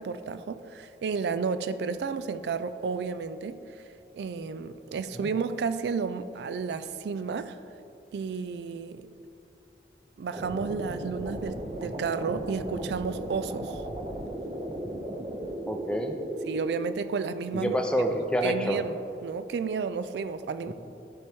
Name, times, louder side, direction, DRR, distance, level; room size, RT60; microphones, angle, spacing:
voice 1, 0.0-3.6 4.1-7.6 8.1-9.1 10.2-13.8 16.5-17.8 18.4-19.0 19.2-20.7, right 5 dB, 75° right, 12 dB, 0.3 m, -32 dB
sound 1, 10.3-16.6, right 1 dB, 35° right, 0.7 m, -36 dB
voice 2, 15.7-16.2 17.5-18.8 20.7-20.8, equal, 5° left, 3 dB, 0.5 m, -27 dB
12.0 x 4.6 x 3.5 m, 3.0 s
head